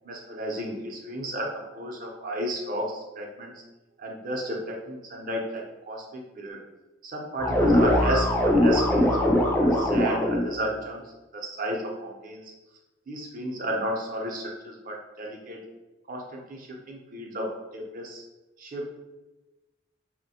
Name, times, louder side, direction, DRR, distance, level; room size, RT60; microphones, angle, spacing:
voice 1, 0.0-3.5 4.0-6.6 7.0-11.0 11.3-12.5 13.1-15.6 16.1-18.2 18.6-18.9, right 1 dB, 45° right, 0 dB, 0.6 m, -33 dB
sound 1, 7.4-10.5, left 1 dB, 10° left, 0.4 m, -21 dB
3.2 x 2.1 x 2.7 m, 1.1 s
head